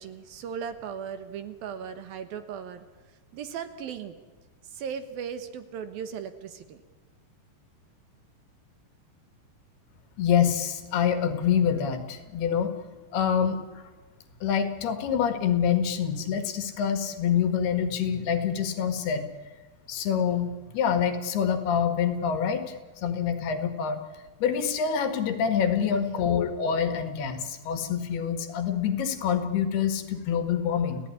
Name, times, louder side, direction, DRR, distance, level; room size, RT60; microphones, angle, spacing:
voice 1, 0.0-2.8 3.3-4.2 4.6-6.8 25.9-26.4, right 7 dB, 65° right, 10 dB, 2.9 m, -37 dB
voice 2, 10.2-12.7 13.1-13.8 14.4-19.3 19.9-22.8 23.0-24.0 24.4-31.0, left 8 dB, 70° left, 9 dB, 3.6 m, -26 dB
29.0 x 16.5 x 9.9 m, 1.2 s
omnidirectional pair, 4.8 m